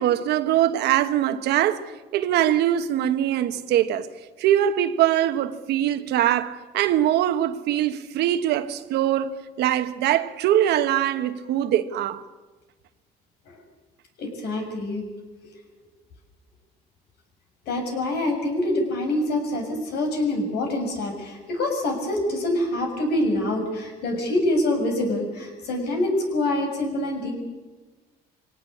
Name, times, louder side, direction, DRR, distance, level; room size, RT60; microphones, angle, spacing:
voice 1, 0.0-4.1 4.4-12.2, right 11 dB, 80° right, 1.3 m, -22 dB
voice 2, 14.2-15.1 17.6-27.3, left 1 dB, 75° left, 6.5 m, -25 dB
23.5 x 18.0 x 8.6 m
cardioid pair, 110°, 17 cm